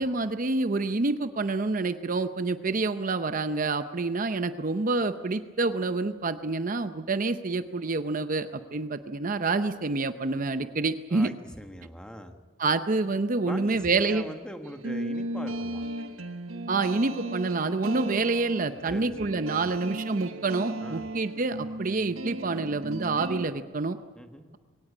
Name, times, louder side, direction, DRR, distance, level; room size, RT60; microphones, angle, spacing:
voice 1, 0.0-11.3 12.6-14.2 16.7-24.0, right 3 dB, 40° right, 10 dB, 0.7 m, -27 dB
voice 2, 11.1-12.3 13.4-15.8 18.9-19.7 20.8-21.1 24.1-24.5, equal, 5° left, 6 dB, 1.4 m, -42 dB
sound 1, 14.6-23.5, right 1 dB, 85° right, 1.5 m, -35 dB
22.0 x 18.0 x 8.5 m, 1.4 s
head